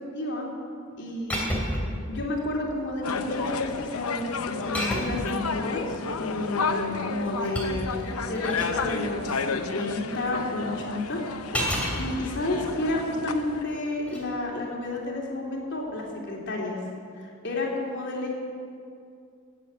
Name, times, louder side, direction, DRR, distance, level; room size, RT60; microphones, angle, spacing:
voice 1, 0.1-0.5 1.0-11.2 11.5-16.8 17.1-18.3, left 2 dB, 55° left, -1 dB, 3.1 m, -31 dB
sound 1, 1.3-1.9 2.9-3.3 4.7-5.3 7.0-8.8 11.5-12.0 14.0-14.2, equal, 5° left, 2.7 m, -30 dB
sound 2, 3.0-13.6, left 4 dB, 90° left, 0.9 m, -32 dB
16.5 x 8.2 x 8.8 m, 2.4 s
head